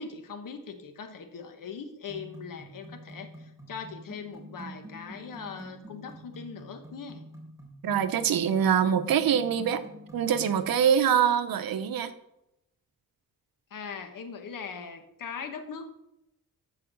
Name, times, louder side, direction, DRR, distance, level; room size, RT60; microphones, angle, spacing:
voice 1, 0.0-7.2 13.7-15.9, left 5 dB, 65° left, 6 dB, 1.5 m, -40 dB
sound 1, 2.1-10.6, right 1 dB, 10° right, 3.8 m, -46 dB
voice 2, 7.8-9.8 10.1-12.1, right 8 dB, 80° right, 10 dB, 1.0 m, -24 dB
14.5 x 4.9 x 6.3 m, 0.84 s
wide cardioid pair, 130°, 35 cm